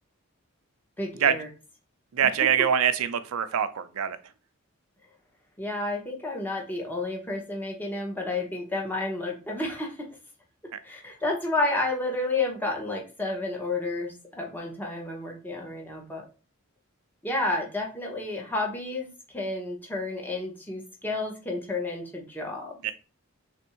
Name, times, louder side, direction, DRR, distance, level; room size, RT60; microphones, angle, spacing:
voice 1, 1.0-1.5 2.4-2.5 5.6-10.2 10.8-16.2 17.2-22.8, left 2 dB, 10° left, 0 dB, 0.8 m, -31 dB
voice 2, 2.1-4.2 22.8-22.9, right 8 dB, 85° right, 12 dB, 0.4 m, -24 dB
3.5 x 2.6 x 4.3 m, 0.34 s
head